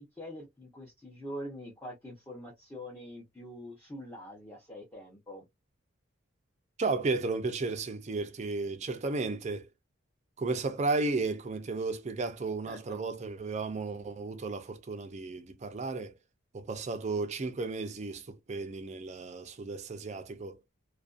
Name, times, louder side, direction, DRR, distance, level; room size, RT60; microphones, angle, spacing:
voice 1, 0.0-5.4 12.7-13.0, equal, 15° left, 0.6 m, -44 dB
voice 2, 6.8-9.7 10.4-16.1 16.5-20.6, right 3 dB, 35° right, 0.4 m, -34 dB
2.4 x 2.2 x 2.4 m
head